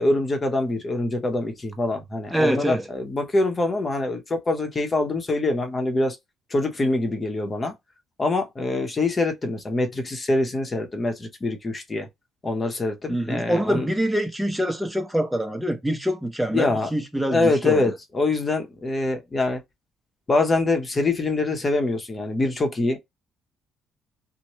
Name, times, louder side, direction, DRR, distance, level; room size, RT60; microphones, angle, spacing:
voice 1, 0.0-6.2 6.5-7.7 8.2-12.1 12.4-13.9 16.5-16.9 17.3-19.6 20.3-23.0, left 2 dB, 30° left, 0.9 m, -24 dB
voice 2, 2.3-2.9 13.1-17.8, equal, 5° right, 0.9 m, -25 dB
3.0 x 2.2 x 3.0 m
supercardioid pair, 80°, 0 cm